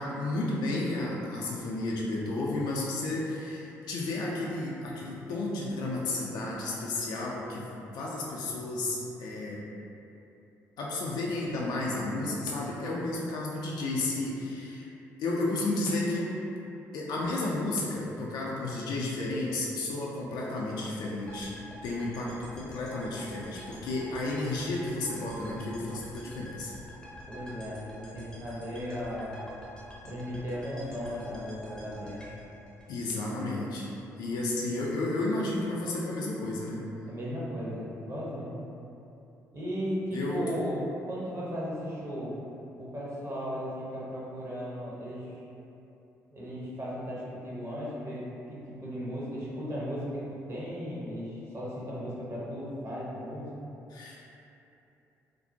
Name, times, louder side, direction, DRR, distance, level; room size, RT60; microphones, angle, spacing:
voice 1, 0.0-9.7 10.8-14.9 15.2-16.4 16.9-21.5 21.8-26.7 32.9-33.9 34.2-36.8 40.1-40.5 53.9-54.2, left 2 dB, 60° left, -4 dB, 0.3 m, -32 dB
sound 1, 21.3-33.4, equal, 10° left, 0.6 m, -47 dB
voice 2, 27.3-29.5 30.1-32.3 37.1-38.5 39.5-40.8 41.1-42.3 42.8-45.3 46.3-48.2 48.5-53.7, equal, 35° right, -7 dB, 0.8 m, -36 dB
2.5 x 2.0 x 2.7 m, 2.9 s
figure-of-eight pair, 45°, 8 cm